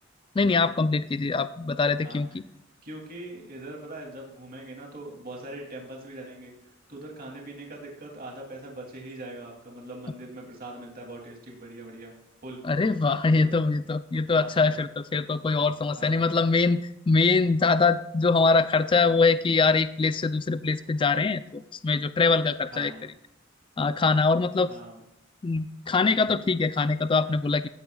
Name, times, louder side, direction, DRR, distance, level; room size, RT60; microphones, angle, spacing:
voice 1, 0.4-2.4 12.6-16.8 17.1-22.9 23.8-24.7 25.4-27.7, left 4 dB, 25° left, 13 dB, 0.4 m, -23 dB
voice 2, 2.0-2.4 2.8-12.1 12.4-12.6 13.3-13.6 14.3-14.8 16.0-16.3 22.7-23.0 24.7-25.0, right 1 dB, 45° right, -1 dB, 2.8 m, -42 dB
15.5 x 10.0 x 2.3 m, 0.84 s
head